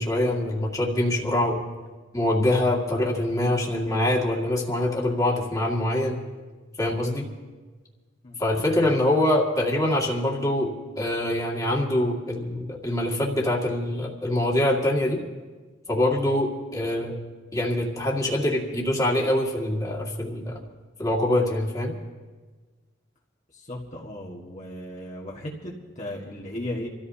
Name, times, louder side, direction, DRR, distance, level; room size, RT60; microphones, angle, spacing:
voice 1, 0.0-1.6 2.1-6.2 6.8-7.3 8.4-15.2 15.9-17.2 17.5-20.6 21.0-21.9, left 1 dB, 20° left, -3 dB, 2.0 m, -24 dB
voice 2, 23.7-26.9, left 1 dB, 40° left, -3 dB, 1.6 m, -36 dB
27.0 x 14.0 x 2.8 m, 1.4 s
head